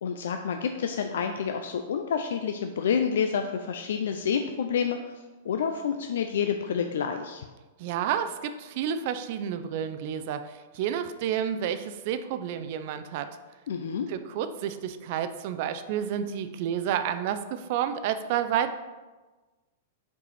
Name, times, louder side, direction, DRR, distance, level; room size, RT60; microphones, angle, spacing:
voice 1, 0.0-7.4 13.7-14.1, left 7 dB, 80° left, 6 dB, 0.4 m, -29 dB
voice 2, 7.8-13.3 14.1-18.7, right 9 dB, 45° right, 10 dB, 0.4 m, -30 dB
5.5 x 4.6 x 4.2 m, 1.2 s
supercardioid pair, 165°, 0 cm